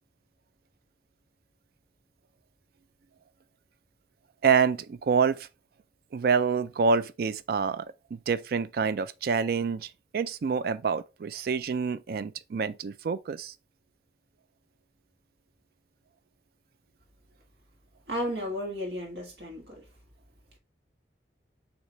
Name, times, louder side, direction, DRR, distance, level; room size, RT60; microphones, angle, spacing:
voice 1, 4.4-5.5 6.1-7.9 8.1-13.5, right 5 dB, 55° right, 0.3 m, -27 dB
voice 2, 18.1-19.8, equal, 70° right, 1.6 m, -33 dB
6.4 x 2.9 x 2.9 m
head